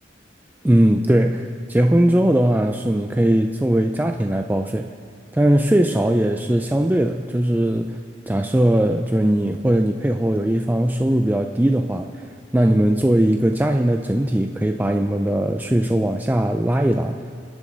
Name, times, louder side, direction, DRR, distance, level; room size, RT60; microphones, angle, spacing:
voice 1, 0.6-4.9 5.3-8.0 8.3-12.3 12.5-17.2, right 1 dB, 10° right, 5 dB, 0.4 m, -19 dB
29.5 x 10.5 x 4.0 m, 2.2 s
head